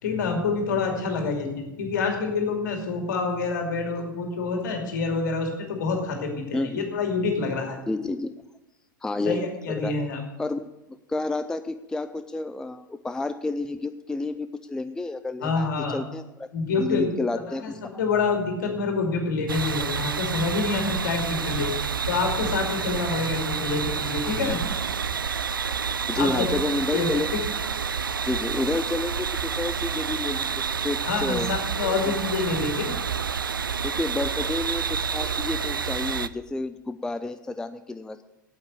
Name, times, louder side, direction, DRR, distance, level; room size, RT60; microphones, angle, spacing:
voice 1, 0.0-7.8 9.2-10.2 15.4-16.0 16.5-17.1 17.5-17.7 18.0-21.7 22.1-24.6 26.2-26.5 26.9-27.1 31.0-32.9, left 4 dB, 60° left, 3 dB, 2.7 m, -27 dB
voice 2, 6.5-6.8 7.9-8.3 9.0-9.9 10.4-10.7 11.1-16.2 16.8-18.0 26.1-27.3 28.2-31.5 31.8-32.2 33.8-38.2, left 2 dB, 5° left, 11 dB, 0.4 m, -30 dB
sound 1, 19.5-36.3, right 6 dB, 80° right, 0.4 m, -29 dB
8.7 x 8.2 x 9.2 m, 0.99 s
figure-of-eight pair, 90°, 11 cm